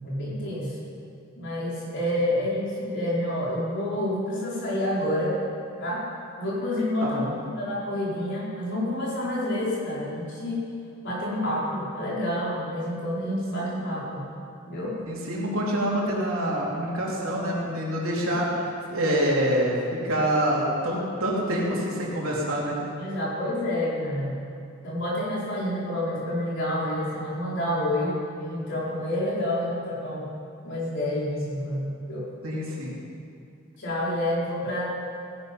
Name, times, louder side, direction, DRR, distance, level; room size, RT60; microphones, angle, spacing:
voice 1, 0.0-0.8 1.4-5.4 5.8-6.0 6.4-10.6 11.0-14.2 14.7-15.0 23.0-24.4 24.8-30.3 30.6-32.3 33.8-34.8, left 1 dB, 60° left, -6 dB, 4.6 m, -28 dB
voice 2, 7.0-7.3 15.1-22.8 32.4-33.0, equal, 75° right, -4 dB, 3.4 m, -26 dB
17.5 x 11.0 x 5.3 m, 2.5 s
head